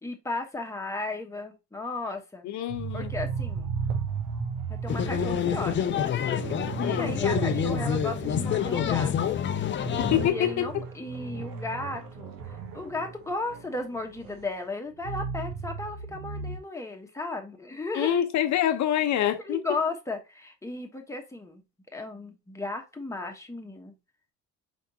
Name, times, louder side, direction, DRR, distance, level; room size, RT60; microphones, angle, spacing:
voice 1, 0.0-2.5 2.9-3.7 4.7-6.1 6.9-9.4 10.3-12.4 12.7-18.2 19.5-21.6 21.9-24.0, left 2 dB, 10° left, 1.2 m, -35 dB
voice 2, 2.4-3.1 6.8-7.2 10.0-10.7 17.9-19.6, left 11 dB, 60° left, 0.9 m, -26 dB
sound 1, 2.7-9.1 9.4-9.5 9.8-14.5 14.9-16.6, right 6 dB, 80° right, 1.3 m, -35 dB
sound 2, 4.9-10.3, left 9 dB, 35° left, 0.6 m, -27 dB
5.2 x 3.4 x 2.8 m
cardioid pair, 110°, 32 cm